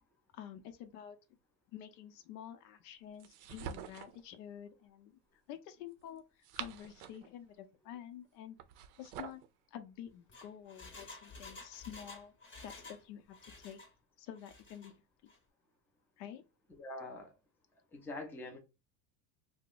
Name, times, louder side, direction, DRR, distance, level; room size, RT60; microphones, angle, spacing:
voice 1, 0.3-1.2 1.7-5.2 5.5-8.6 9.0-9.4 9.7-12.3 12.6-13.8 14.2-14.9 15.2-15.3 16.2-16.4, left 10 dB, 75° left, 0.7 m, -49 dB
sound 1, 3.2-4.2 6.2-7.3 8.6-9.5, right 9 dB, 60° right, 0.5 m, -46 dB
Engine, 10.1-13.1 13.3-13.9 14.4-14.9 15.3-15.4, left 3 dB, 25° left, 0.8 m, -52 dB
voice 2, 16.8-17.3 17.9-18.6, left 2 dB, 5° left, 0.4 m, -44 dB
2.8 x 2.1 x 3.8 m
supercardioid pair, 120°, 49 cm